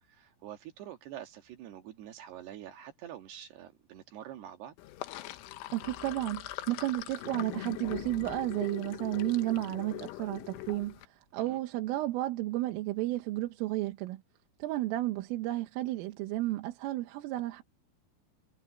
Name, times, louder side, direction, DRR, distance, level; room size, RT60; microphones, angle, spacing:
voice 1, 0.1-4.7 11.4-11.6, right 11 dB, 65° right, 3.2 m, -46 dB
Sink (filling or washing), 4.8-11.1, left 17 dB, 75° left, 3.3 m, -42 dB
voice 2, 5.7-14.2 14.6-17.6, right 16 dB, 80° right, 3.8 m, -32 dB
omnidirectional pair, 5.9 m